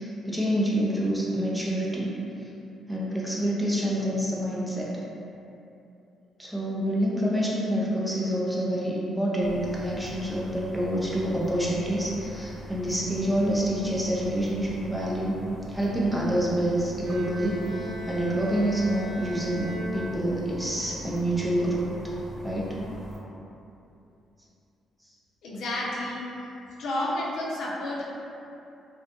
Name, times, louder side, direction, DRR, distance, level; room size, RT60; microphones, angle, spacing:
voice 1, 0.0-2.1 2.9-4.9 6.4-15.4 15.7-21.9 22.4-22.8, right 1 dB, 5° right, -6 dB, 0.5 m, -27 dB
sound 1, 9.4-23.2, right 1 dB, 20° left, 1.0 m, -42 dB
Bowed string instrument, 17.0-20.8, left 1 dB, 50° right, 0.6 m, -39 dB
voice 2, 25.4-26.2 26.8-28.0, left 1 dB, 75° left, -5 dB, 0.5 m, -30 dB
2.3 x 2.1 x 2.9 m, 2.8 s
cardioid pair, 90°, 0 cm